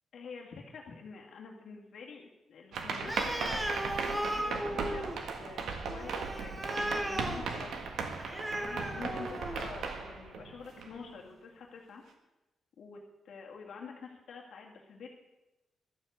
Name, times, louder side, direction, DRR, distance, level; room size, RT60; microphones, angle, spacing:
voice 1, 0.1-8.0 8.5-12.0 12.8-13.0 13.2-15.1, left 5 dB, 70° left, -1 dB, 2.0 m, -47 dB
sound 1, 2.7-11.2, right 5 dB, 80° right, 1.7 m, -37 dB
Animal, 3.0-9.8, right 1 dB, 10° right, 1.3 m, -37 dB
13.0 x 7.5 x 8.1 m, 1.0 s
wide cardioid pair, 155°, 0 cm